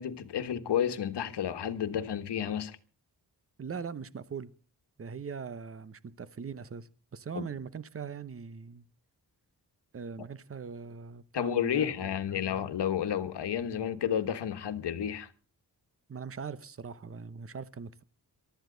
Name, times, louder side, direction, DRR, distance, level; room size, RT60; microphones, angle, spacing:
voice 1, 0.0-2.8 7.3-7.5 11.3-15.3, left 9 dB, 85° left, 1.4 m, -31 dB
voice 2, 3.6-4.5 5.0-8.9 9.9-12.7 16.1-18.0, right 6 dB, 35° right, 0.9 m, -41 dB
23.0 x 13.0 x 3.9 m
wide cardioid pair, 120°, 40 cm